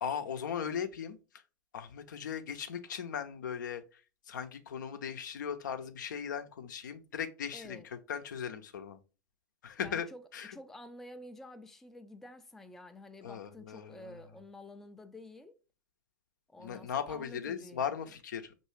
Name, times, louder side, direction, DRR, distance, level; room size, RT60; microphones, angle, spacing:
voice 1, 0.0-1.2 1.7-3.8 4.3-7.8 8.1-9.0 9.6-10.1 10.3-10.6 13.2-14.1 16.6-18.7, left 7 dB, 70° left, 0.6 m, -38 dB
voice 2, 7.5-7.9 9.8-10.2 10.5-15.6 16.5-18.1, left 1 dB, 5° left, 0.4 m, -50 dB
5.4 x 2.6 x 3.0 m
hypercardioid pair, 95°, 10 cm